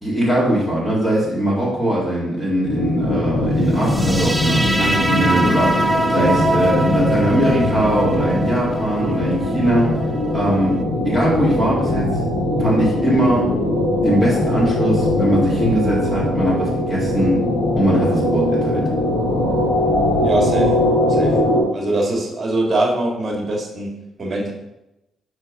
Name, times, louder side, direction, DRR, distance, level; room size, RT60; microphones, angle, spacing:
voice 1, 0.0-9.9 10.3-10.8 11.0-12.1 12.6-13.5 14.0-17.4 17.8-18.8, right 1 dB, 15° left, -6 dB, 2.2 m, -20 dB
sound 1, 2.6-21.6, left 1 dB, 85° left, 2.2 m, -21 dB
sound 2, 3.8-10.8, right 1 dB, 10° right, 0.5 m, -24 dB
voice 2, 20.2-20.7 21.1-21.4 21.7-24.5, right 2 dB, 35° right, 0 dB, 1.9 m, -22 dB
4.5 x 4.4 x 5.3 m, 0.90 s
cardioid pair, 90°, 0 cm